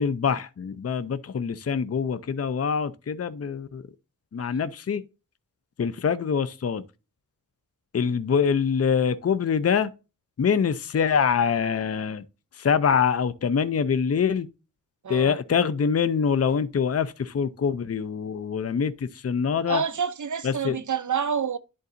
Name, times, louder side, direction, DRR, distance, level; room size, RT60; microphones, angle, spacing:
voice 1, 0.0-3.8 4.3-5.0 5.8-6.8 7.9-9.9 10.4-12.2 12.6-14.5 15.1-19.8 20.4-20.8, left 6 dB, 45° left, 0.5 m, -24 dB
voice 2, 15.0-15.4 19.7-21.6, right 7 dB, 65° right, 0.6 m, -28 dB
11.0 x 3.9 x 2.6 m
wide cardioid pair, 85°, 33 cm